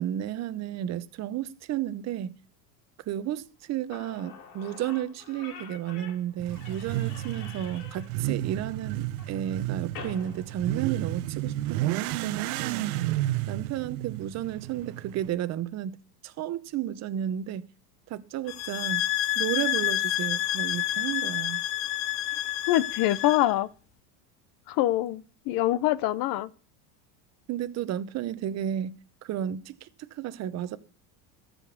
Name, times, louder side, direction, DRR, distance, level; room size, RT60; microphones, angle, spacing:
voice 1, 0.0-2.3 3.1-12.9 13.5-16.0 16.2-17.7 18.1-19.0 19.3-21.6 27.5-29.0 29.2-30.8, right 11 dB, 35° right, 0.8 m, -32 dB
Slam / Squeak, 3.6-3.7 3.9-11.4, left 6 dB, 80° left, 2.8 m, -47 dB
Motorcycle / Accelerating revving vroom, 6.4-15.3, right 15 dB, 75° right, 1.0 m, -32 dB
sound 1, 18.5-23.5, left 14 dB, 30° left, 0.4 m, -29 dB
voice 2, 22.7-23.7 24.7-26.5, left 14 dB, 50° left, 0.9 m, -25 dB
13.5 x 5.2 x 7.1 m
supercardioid pair, 130°, 45 cm